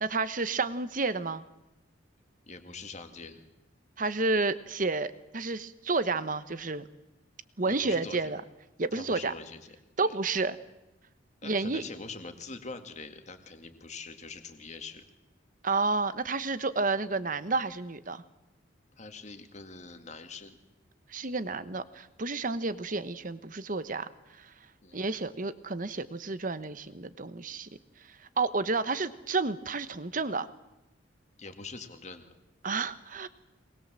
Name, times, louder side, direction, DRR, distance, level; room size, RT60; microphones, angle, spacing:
voice 1, 0.0-1.4 4.0-6.9 7.6-8.4 8.8-9.3 10.0-10.6 11.4-11.8 15.6-18.2 21.1-24.1 24.4-24.5 24.9-27.7 28.4-30.5 32.6-33.3, right 3 dB, 45° right, 13 dB, 1.1 m, -30 dB
voice 2, 2.5-3.5 7.6-8.3 8.9-9.8 10.0-10.1 11.4-15.0 19.0-20.6 24.8-25.0 31.4-32.3, left 4 dB, 35° left, 7 dB, 2.1 m, -44 dB
23.5 x 20.0 x 7.6 m, 0.97 s
head